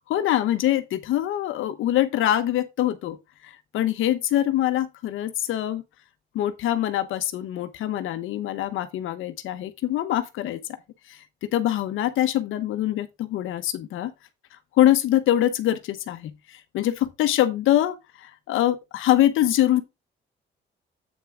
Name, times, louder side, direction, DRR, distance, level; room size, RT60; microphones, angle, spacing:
voice 1, 0.1-3.2 3.4-5.8 6.3-10.6 11.1-14.1 14.7-19.8, left 13 dB, 85° left, 1.1 m, -24 dB
8.4 x 5.7 x 3.8 m
cardioid pair, 90°, 20 cm